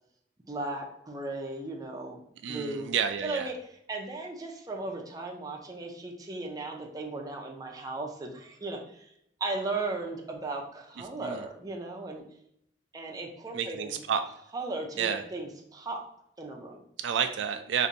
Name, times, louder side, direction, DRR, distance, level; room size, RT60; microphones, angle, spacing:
voice 1, 0.5-2.9 3.2-3.5 3.9-9.1 9.4-12.2 12.9-14.0 14.5-16.0 16.4-16.8, right 2 dB, 20° right, 0 dB, 0.5 m, -36 dB
voice 2, 2.4-3.5 11.2-11.4 13.5-14.2 15.0-15.2 17.0-17.9, right 7 dB, 90° right, 8 dB, 0.3 m, -30 dB
2.6 x 2.6 x 4.0 m, 0.75 s
head